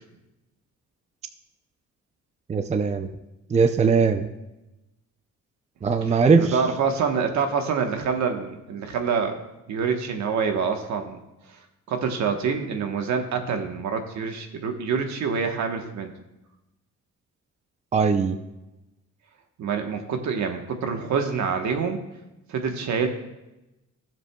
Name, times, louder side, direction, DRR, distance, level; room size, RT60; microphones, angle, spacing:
voice 1, 2.5-3.1 3.5-4.3 5.8-6.6 17.9-18.4, right 5 dB, 25° right, 8 dB, 0.5 m, -20 dB
voice 2, 6.1-9.4 9.7-11.2 11.9-16.1 19.6-22.0 22.5-23.1, right 6 dB, 65° right, 5 dB, 1.2 m, -26 dB
14.5 x 7.5 x 2.3 m, 0.97 s
cardioid pair, 90°, 30 cm